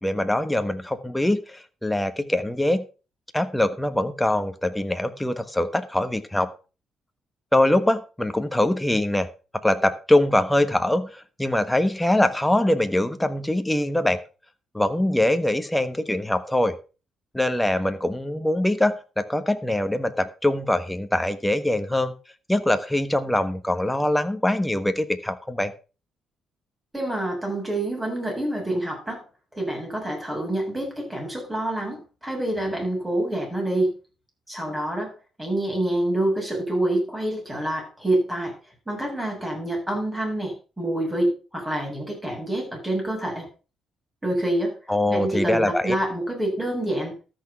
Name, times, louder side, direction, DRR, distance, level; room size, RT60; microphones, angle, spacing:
voice 1, 0.0-2.9 3.3-6.5 7.5-9.3 9.6-14.2 14.7-16.8 17.3-22.1 22.5-25.7 44.9-46.0, left 1 dB, 5° left, 9 dB, 1.3 m, -23 dB
voice 2, 26.9-29.2 29.5-33.9 34.5-38.6 38.9-43.5 44.2-44.8 45.1-47.2, right 1 dB, 10° right, 0 dB, 7.8 m, -27 dB
13.5 x 6.3 x 5.7 m, 0.34 s
cardioid pair, 90°, 0 cm